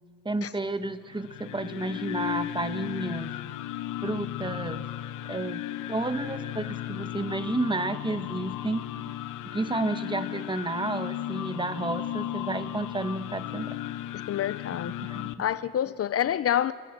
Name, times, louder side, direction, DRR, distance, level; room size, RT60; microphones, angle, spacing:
voice 1, 0.2-3.3 4.0-4.8 5.3-5.6 5.9-8.8 9.5-13.8 15.0-15.3, right 2 dB, 15° right, 1.3 m, -31 dB
sound 1, 1.1-15.3, left 13 dB, 90° left, 1.0 m, -35 dB
voice 2, 14.3-14.9 15.4-16.7, left 10 dB, 50° left, 0.6 m, -27 dB
29.0 x 20.5 x 7.4 m
cardioid pair, 90°, 30 cm